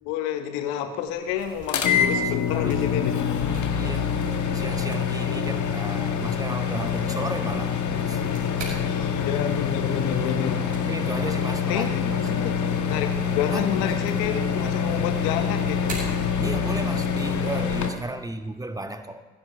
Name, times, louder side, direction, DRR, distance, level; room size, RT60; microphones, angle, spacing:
voice 1, 0.0-3.2 8.8-10.6 11.7-16.1, left 9 dB, 75° left, 1.3 m, -29 dB
sound 1, 1.0-16.9, right 2 dB, 55° right, 6.3 m, -45 dB
sound 2, 1.7-17.9, left 7 dB, 55° left, 1.6 m, -25 dB
voice 2, 1.8-2.8 3.7-4.1 4.5-7.8 8.1-8.5 10.9-11.9 13.5-15.0 16.4-19.2, right 1 dB, 10° right, 1.5 m, -35 dB
20.5 x 16.0 x 3.2 m
figure-of-eight pair, 40°, 35 cm